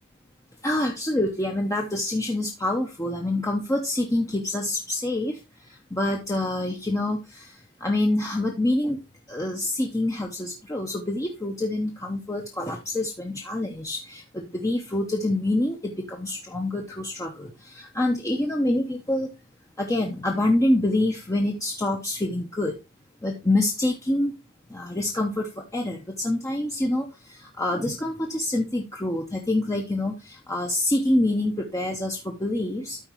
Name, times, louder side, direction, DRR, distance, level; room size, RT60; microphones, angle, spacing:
voice 1, 0.6-5.4 5.9-7.5 7.8-9.0 9.3-19.3 19.8-22.7 23.2-24.3 24.7-33.0, left 1 dB, 15° left, 1 dB, 0.7 m, -26 dB
13.0 x 4.5 x 3.0 m, 0.26 s
head